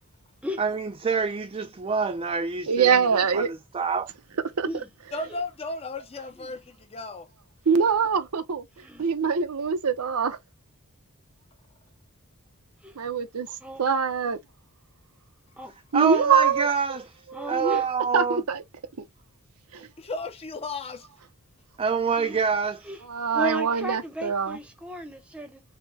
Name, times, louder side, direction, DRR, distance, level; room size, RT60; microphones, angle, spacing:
voice 1, 0.6-4.1 15.9-17.1 17.5-18.4 21.8-22.8, right 5 dB, 25° right, 0.4 m, -27 dB
voice 2, 2.7-3.5 4.6-4.7 7.7-8.6 9.0-10.4 13.0-13.5 13.8-14.4 15.9-16.7 17.3-17.8 18.1-18.6 19.7-19.9 23.1-24.6, right 6 dB, 80° right, 0.7 m, -23 dB
voice 3, 5.1-7.3 19.8-21.1, left 2 dB, 25° left, 0.6 m, -35 dB
voice 4, 8.8-9.1 12.8-12.9 13.6-13.8 15.6-15.7 16.0-16.3 17.3-17.9 22.2-22.4 22.8-23.0 23.3-25.6, right 1 dB, 5° right, 0.8 m, -35 dB
5.6 x 2.1 x 3.4 m
head